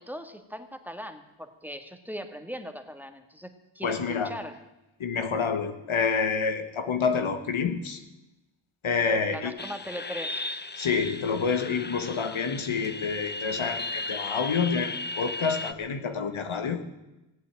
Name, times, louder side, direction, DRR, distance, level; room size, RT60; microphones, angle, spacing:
voice 1, 0.0-4.6 9.0-10.4, equal, 5° right, 7 dB, 1.6 m, -39 dB
voice 2, 3.8-4.3 5.0-8.0 8.8-9.5 10.8-16.8, left 5 dB, 80° left, 8 dB, 1.5 m, -28 dB
sound 1, 9.6-15.7, left 3 dB, 20° left, 0.7 m, -36 dB
17.5 x 8.4 x 8.8 m, 0.97 s
cardioid pair, 55°, 48 cm